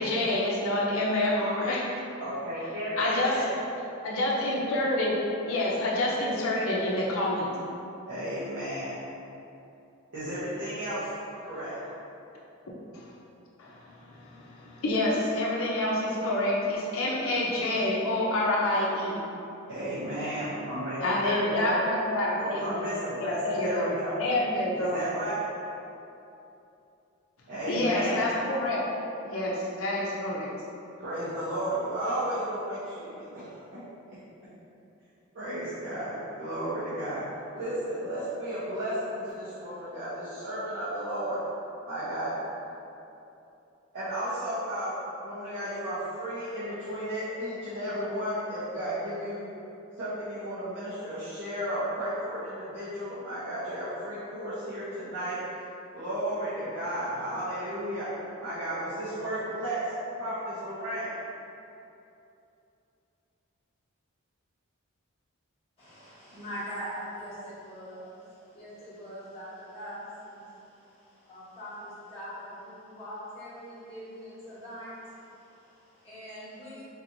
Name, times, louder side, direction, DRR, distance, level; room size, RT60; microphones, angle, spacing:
voice 1, 0.0-1.9 3.0-3.4 4.0-5.2 5.4-7.5 12.9-13.1 13.6-19.2 21.0-22.8 23.2-25.0 27.7-28.9 29.2-30.5, left 1 dB, 70° left, -4 dB, 0.7 m, -28 dB
voice 2, 2.2-3.5 8.1-9.0 10.1-11.1 11.4-11.8 19.7-21.8 22.3-24.2 24.8-25.4 27.5-28.2 31.0-33.8 34.1-34.2 35.3-37.2 37.5-41.4 41.9-42.4 43.9-44.9 45.2-49.4 50.0-55.4 55.9-58.1 58.4-59.8 60.2-61.1, right 1 dB, 55° right, -15 dB, 0.9 m, -33 dB
voice 3, 65.8-76.8, equal, 25° left, -13 dB, 1.4 m, -42 dB
4.0 x 2.9 x 2.6 m, 2.8 s
head